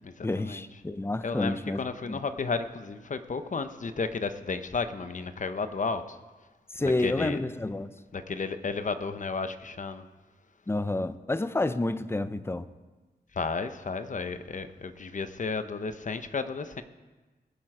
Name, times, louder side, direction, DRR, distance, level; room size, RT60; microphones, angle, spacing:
voice 1, 0.2-1.8 2.1-2.2 6.7-7.9 10.7-12.7, left 2 dB, 15° left, 13 dB, 0.6 m, -29 dB
voice 2, 1.2-6.2 7.0-7.4 8.1-10.0 13.4-16.8, left 4 dB, 50° left, 10 dB, 0.8 m, -33 dB
20.0 x 7.6 x 4.9 m, 1.2 s
wide cardioid pair, 100°, 17 cm